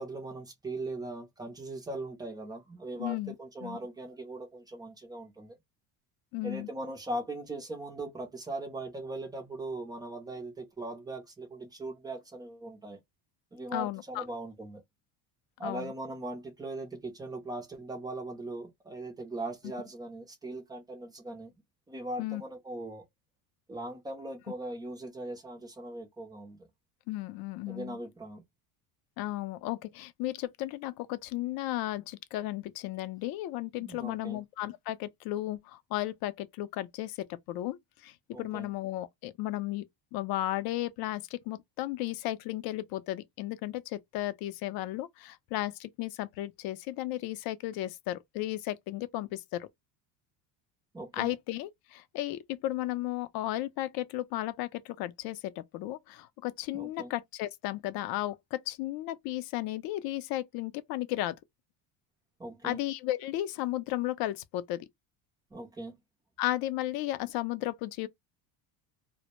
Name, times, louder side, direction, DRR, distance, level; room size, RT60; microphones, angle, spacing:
voice 1, 0.0-5.6 6.4-13.0 13.5-14.8 15.6-21.5 21.9-23.1 23.7-26.7 27.7-28.4 33.8-34.4 38.3-38.7 50.9-51.4 56.7-57.1 62.4-62.8 65.5-66.0, right 2 dB, 10° right, 0.3 m, -40 dB
voice 2, 3.0-3.3 3.6-3.8 6.3-6.7 13.7-14.2 15.6-15.9 22.2-22.4 27.1-28.0 29.2-39.9 40.1-49.7 51.1-61.4 62.6-64.9 66.4-68.1, left 15 dB, 55° left, 0.5 m, -34 dB
2.1 x 2.0 x 2.8 m
cardioid pair, 135°, 45 cm